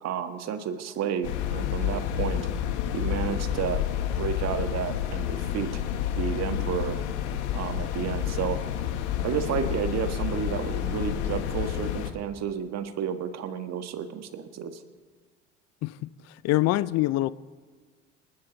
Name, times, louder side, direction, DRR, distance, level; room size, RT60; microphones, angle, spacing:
voice 1, 0.0-2.5 2.9-3.8 4.2-5.8 6.1-7.0 7.5-8.6 9.2-14.8, right 8 dB, 45° right, 1.6 m, -31 dB
sound 1, 1.2-12.1, left 10 dB, 70° left, 1.5 m, -29 dB
voice 2, 16.4-17.3, left 17 dB, 45° left, 0.5 m, -24 dB
27.5 x 12.5 x 4.0 m
hypercardioid pair, 70°, 36 cm